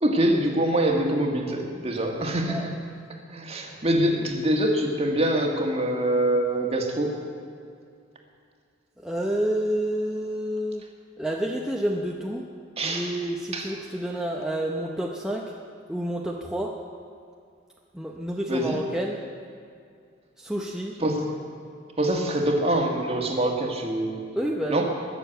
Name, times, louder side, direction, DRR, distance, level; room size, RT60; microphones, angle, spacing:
voice 1, 0.0-2.8 3.3-7.1 12.8-13.1 13.5-13.7 18.5-18.8 21.0-21.4 22.0-24.2 24.7-24.8, right 1 dB, 30° right, 1 dB, 1.7 m, -24 dB
voice 2, 9.0-10.9 11.2-12.5 12.8-15.5 15.9-16.8 17.9-19.2 20.4-21.0 24.3-24.8, right 1 dB, 5° right, -1 dB, 0.7 m, -29 dB
20.5 x 6.9 x 8.0 m, 2.3 s
head